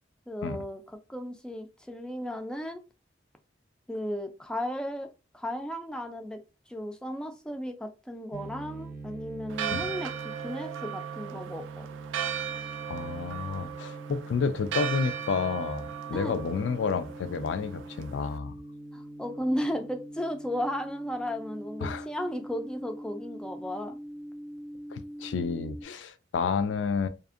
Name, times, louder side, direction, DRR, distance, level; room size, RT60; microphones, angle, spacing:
voice 1, 0.3-0.8 1.1-2.8 3.9-6.4 6.7-11.9 16.1-16.4 18.9-24.0, equal, 5° left, 0.3 m, -35 dB
sound 1, 8.3-25.8, right 2 dB, 45° right, 0.7 m, -43 dB
Church bell, 9.5-18.4, right 9 dB, 90° right, 0.3 m, -37 dB
voice 2, 12.9-18.5 21.8-22.1 24.9-27.1, left 5 dB, 75° left, 0.4 m, -30 dB
2.5 x 2.4 x 2.4 m
head